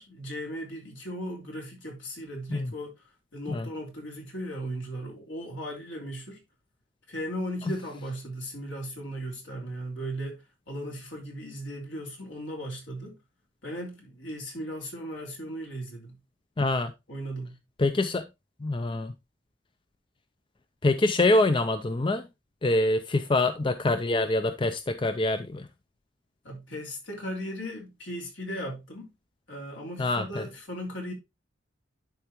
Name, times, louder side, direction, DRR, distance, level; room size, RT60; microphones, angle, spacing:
voice 1, 0.0-2.9 3.3-6.4 7.1-13.2 13.6-16.2 17.1-17.6 26.4-29.1 29.5-31.1, equal, 70° left, 3.2 m, -37 dB
voice 2, 16.6-16.9 17.8-18.3 18.6-19.1 20.8-22.2 22.6-25.7 30.0-30.4, left 2 dB, 25° left, 0.4 m, -25 dB
11.0 x 4.7 x 2.9 m
head